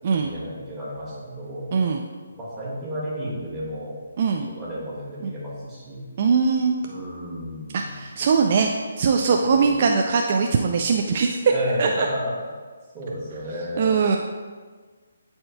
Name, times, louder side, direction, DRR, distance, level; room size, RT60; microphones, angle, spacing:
voice 1, 0.2-1.7 2.3-3.9 4.4-6.1 6.8-8.0 9.2-9.7 11.5-12.5 12.9-13.9, equal, 15° right, -8 dB, 1.9 m, -32 dB
voice 2, 1.7-2.0 4.2-4.5 5.2-5.3 6.2-6.8 7.7-8.7 9.0-11.4 11.8-12.1 13.8-14.2, right 5 dB, 40° right, 2 dB, 0.4 m, -21 dB
11.0 x 4.4 x 2.3 m, 1.5 s
hypercardioid pair, 160°, 0 cm